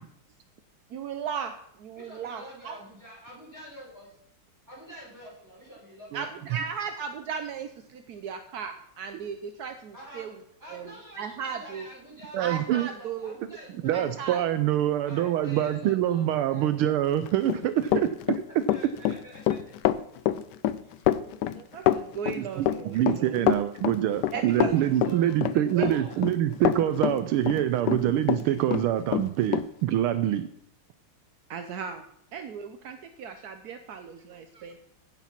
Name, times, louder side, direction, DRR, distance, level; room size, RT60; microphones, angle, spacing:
voice 1, 0.9-1.5 1.8-2.8 6.1-10.3 10.7-11.9 12.4-13.3 13.9-14.4 21.6-23.4 24.3-24.8 25.8-26.0 31.5-32.0 32.3-34.8, right 6 dB, 65° right, 7 dB, 1.0 m, -36 dB
voice 2, 1.9-4.2 4.7-6.6 9.9-10.3 10.6-14.0 15.0-16.6 18.5-19.6 21.1-21.6 24.0-26.2, right 1 dB, 10° right, -6 dB, 5.7 m, -47 dB
voice 3, 12.3-12.9 13.8-18.4 22.4-30.5, right 12 dB, 80° right, 11 dB, 1.5 m, -25 dB
Run, 17.3-28.4 28.7-29.7, left 12 dB, 85° left, 0.9 m, -26 dB
16.0 x 5.9 x 5.8 m, 0.71 s
omnidirectional pair, 2.4 m